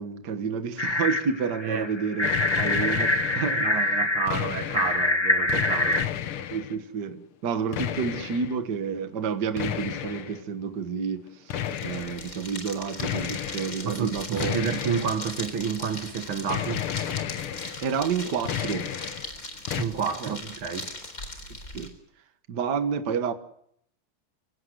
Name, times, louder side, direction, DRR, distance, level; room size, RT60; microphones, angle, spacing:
voice 1, 0.0-2.3 2.6-3.9 6.5-11.6 11.8-14.6 17.8-18.9 20.2-20.4 21.7-21.9 22.5-23.3, right 6 dB, 55° right, 2.0 m, -30 dB
sound 1, 0.8-6.0, left 2 dB, 20° left, 0.8 m, -25 dB
sound 2, 2.2-3.7 4.0-5.1 5.5-6.8 7.7-8.6 9.6-10.4 11.5-12.3 13.0-13.8 14.4-15.5 16.5-17.9 18.2-19.3 19.7-19.8, left 10 dB, 85° left, 2.0 m, -32 dB
voice 2, 3.6-6.0 13.8-16.9 19.8-20.9, right 6 dB, 75° right, 2.4 m, -30 dB
sound 3, 11.6-21.9, left 2 dB, 40° left, 4.4 m, -39 dB
28.5 x 16.5 x 8.0 m
omnidirectional pair, 2.3 m